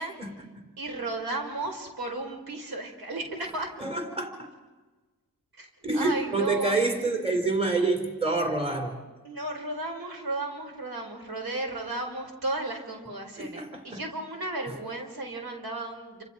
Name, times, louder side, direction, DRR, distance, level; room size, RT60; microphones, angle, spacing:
voice 1, 0.2-0.7 3.8-4.5 5.8-9.0 13.4-14.0, right 3 dB, 15° right, 3 dB, 4.3 m, -28 dB
voice 2, 0.8-3.7 5.5-5.7 5.9-6.8 9.2-16.2, right 2 dB, 70° right, 2 dB, 5.2 m, -34 dB
28.5 x 27.0 x 4.6 m, 1.3 s
cardioid pair, 70°, 38 cm